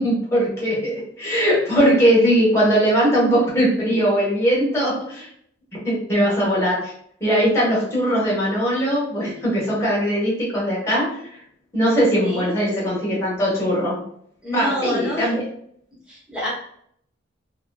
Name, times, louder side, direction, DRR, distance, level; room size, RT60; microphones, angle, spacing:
voice 1, 0.0-5.3 5.8-6.9 7.2-11.4 11.7-14.0 14.5-15.4, equal, 15° left, -7 dB, 1.3 m, -20 dB
voice 2, 14.4-15.3 16.1-16.5, equal, 5° right, -7 dB, 1.1 m, -27 dB
3.0 x 2.8 x 2.3 m, 0.66 s
head